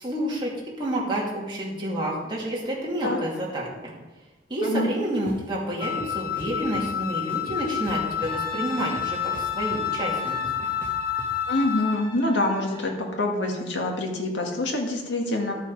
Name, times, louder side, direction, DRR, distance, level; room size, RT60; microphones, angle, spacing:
voice 1, 0.0-3.9 4.5-10.4, right 1 dB, 25° right, -4 dB, 2.6 m, -29 dB
sound 1, 5.3-5.4 5.8-6.8 7.3-8.4 8.8-11.3, right 1 dB, 10° left, 1.7 m, -42 dB
Wind instrument woodwind instrument, 5.8-12.0, left 9 dB, 50° left, 0.4 m, -29 dB
Brass instrument, 8.2-13.0, right 1 dB, 25° left, 3.8 m, -41 dB
voice 2, 11.5-15.5, left 2 dB, 85° left, 1 dB, 2.0 m, -26 dB
12.5 x 7.0 x 4.8 m, 1.2 s
head